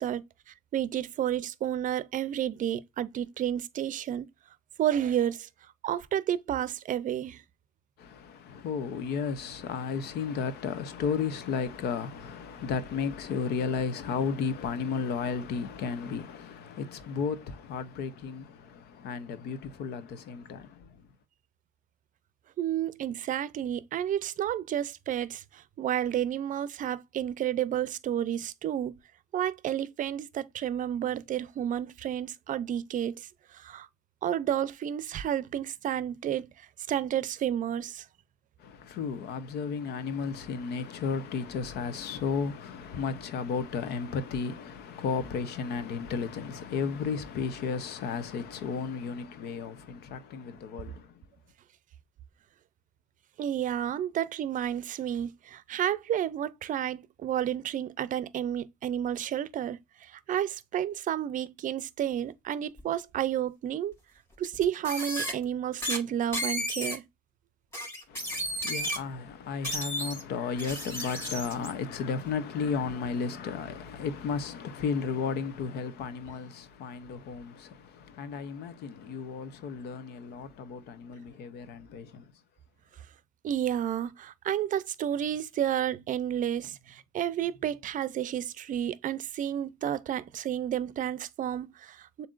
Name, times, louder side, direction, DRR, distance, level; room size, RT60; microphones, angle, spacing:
voice 1, 0.0-4.3 4.8-5.5 5.8-7.4 22.6-28.9 29.3-33.9 34.2-38.1 53.4-63.9 64.4-67.1 83.4-92.3, right 10 dB, 50° right, 0.5 m, -31 dB
voice 2, 8.0-21.0 38.6-51.2 68.1-82.2, left 5 dB, 75° left, 0.8 m, -34 dB
sound 1, 62.8-62.9 64.5-65.3 65.8-66.0 66.3-67.0 67.7-69.0 69.6-70.2 70.6-71.7, equal, 15° left, 3.2 m, -33 dB
7.3 x 2.8 x 2.4 m
cardioid pair, 110°, 17 cm